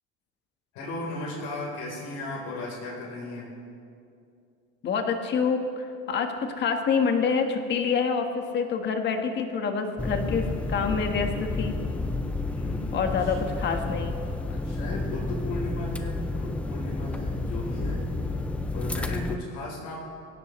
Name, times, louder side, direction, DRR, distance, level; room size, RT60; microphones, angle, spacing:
voice 1, 0.7-3.5 12.4-13.4 14.5-18.0 18.7-20.0, left 2 dB, 60° left, -3 dB, 3.9 m, -36 dB
voice 2, 4.8-11.7 12.9-14.1, left 5 dB, 35° left, 5 dB, 1.4 m, -27 dB
sound 1, 10.0-19.4, left 2 dB, 5° left, 0.4 m, -30 dB
22.0 x 17.0 x 3.2 m, 2.5 s
cardioid pair, 150°, 33 cm